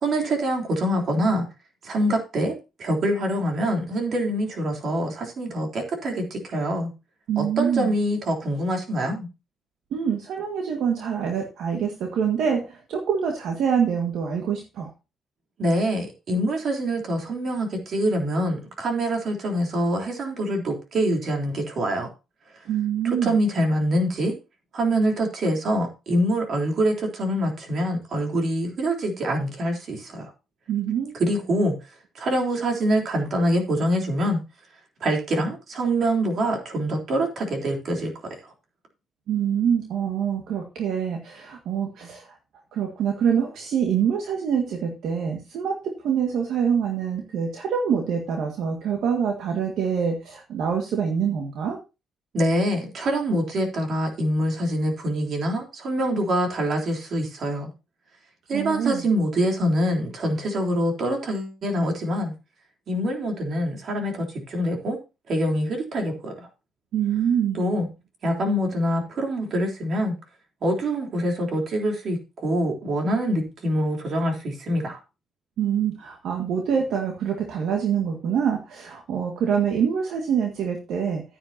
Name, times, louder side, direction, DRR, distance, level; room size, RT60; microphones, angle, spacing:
voice 1, 0.0-1.4 1.8-2.5 2.8-6.9 7.4-9.3 15.6-22.1 23.0-24.3 24.7-30.3 31.2-31.7 32.2-34.4 35.0-38.1 52.3-57.7 58.5-62.3 62.9-65.0 65.3-66.5 67.5-67.9 68.2-70.1 70.6-75.0, right 1 dB, 55° right, 2 dB, 3.5 m, -25 dB
voice 2, 7.3-7.9 9.9-14.9 22.7-23.3 30.7-31.2 39.3-42.4 42.7-51.8 58.5-59.1 66.9-67.6 75.6-81.2, right 7 dB, 75° right, 2 dB, 1.8 m, -25 dB
11.0 x 9.9 x 2.8 m, 0.28 s
cardioid pair, 90°, 0 cm